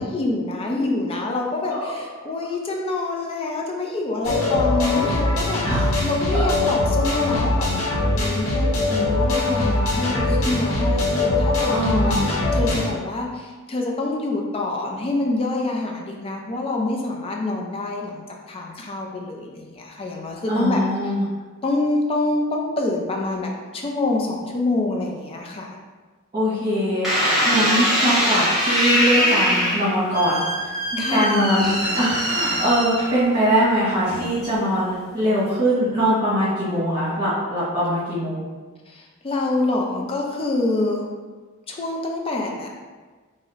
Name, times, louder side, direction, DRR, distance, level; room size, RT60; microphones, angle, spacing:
voice 1, 0.0-5.6 6.0-7.7 8.1-20.8 21.6-25.8 31.0-32.0 38.9-41.1 41.7-42.7, left 2 dB, 25° left, 0 dB, 0.4 m, -26 dB
voice 2, 1.6-1.9 5.6-5.9 6.3-6.5 11.7-12.3 20.5-21.2 26.3-27.1 27.4-30.4 30.9-31.7 32.0-38.4, equal, 25° right, -13 dB, 1.2 m, -22 dB
sound 1, 4.2-12.9, left 2 dB, 65° left, 0.8 m, -22 dB
sound 2, 27.0-33.4 34.1-34.6, equal, ahead, 0.9 m, -22 dB
2.7 x 2.1 x 3.8 m, 1.4 s
head